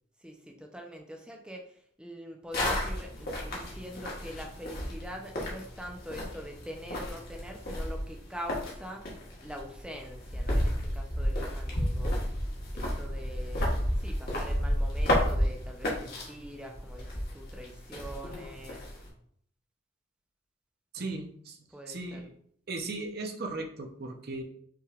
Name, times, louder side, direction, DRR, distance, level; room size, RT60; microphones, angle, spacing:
voice 1, 0.2-9.0 9.4-12.2 12.7-18.8 21.0-21.2 21.7-22.3, equal, 5° right, 1 dB, 0.5 m, -44 dB
sound 1, 2.5-19.1, equal, 50° left, 1.2 m, -32 dB
voice 2, 20.9-21.6 21.9-22.3 22.7-24.4, right 3 dB, 50° right, 3 dB, 0.6 m, -37 dB
5.6 x 3.2 x 2.4 m, 0.64 s
head